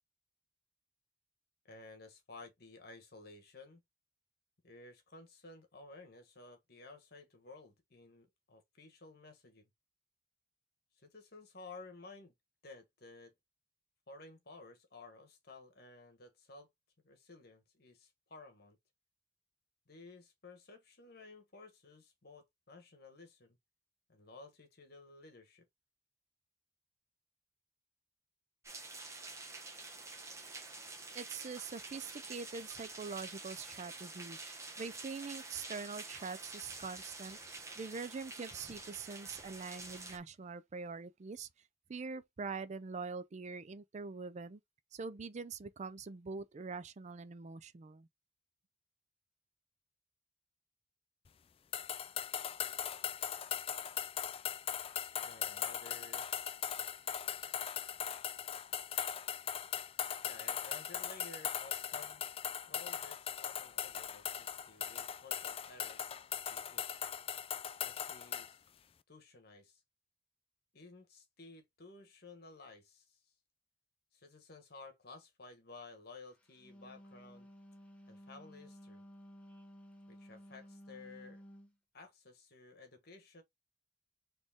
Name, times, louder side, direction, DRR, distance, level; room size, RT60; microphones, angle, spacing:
voice 1, 1.6-3.8 4.6-9.7 10.9-12.3 12.6-13.3 14.1-16.7 17.0-18.8 19.9-23.6 24.1-25.7 55.2-56.3 60.2-62.2 62.7-66.0 66.5-67.0 67.8-68.7 69.1-69.8 70.7-73.2 74.1-77.5 78.1-79.0 80.1-81.4 81.9-83.4, left 3 dB, 60° left, 1.4 m, -55 dB
sound 1, 28.6-40.2, right 3 dB, 15° right, 0.8 m, -48 dB
voice 2, 31.1-41.5 41.9-44.6 44.9-48.1, right 4 dB, 40° right, 0.4 m, -44 dB
sound 2, 51.7-68.5, left 9 dB, 30° left, 0.3 m, -39 dB
Wind instrument woodwind instrument, 76.4-81.7, equal, 10° left, 1.0 m, -55 dB
4.2 x 3.2 x 3.5 m
head